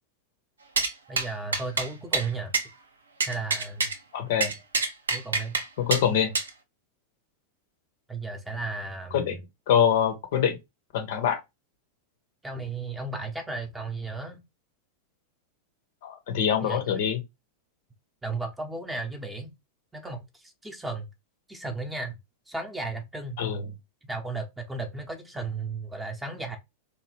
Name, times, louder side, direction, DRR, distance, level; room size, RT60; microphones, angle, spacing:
sound 1, 0.8-0.9 1.2-1.3 1.5-2.3 2.5-2.6 3.2-3.9 4.4-5.6 5.9-6.0 6.3-6.5, right 4 dB, 70° right, 0.5 m, -26 dB
voice 1, 1.1-2.5 3.2-3.9 5.1-5.6 8.1-9.2 12.4-14.4 16.6-16.8 18.2-19.5 19.9-21.1 21.5-22.2 22.5-23.4 24.1-26.6, right 3 dB, 10° right, 0.7 m, -34 dB
voice 2, 4.1-4.5 5.8-6.3 9.1-9.4 9.7-10.6 10.9-11.4 16.0-17.2 23.4-23.6, left 8 dB, 55° left, 0.6 m, -24 dB
3.1 x 2.3 x 2.9 m
figure-of-eight pair, 90°, 0 cm